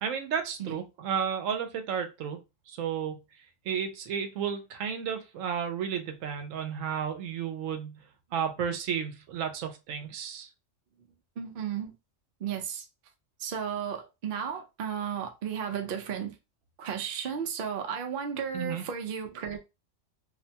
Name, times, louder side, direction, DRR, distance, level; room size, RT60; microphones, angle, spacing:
voice 1, 0.0-2.4 2.7-3.2 3.7-8.0 8.3-10.5 18.5-18.8, right 7 dB, 90° right, 1.0 m, -32 dB
voice 2, 11.4-11.9 12.4-12.9 13.4-16.4 16.8-19.6, right 7 dB, 55° right, 0.6 m, -34 dB
2.6 x 2.1 x 2.7 m
omnidirectional pair, 1.3 m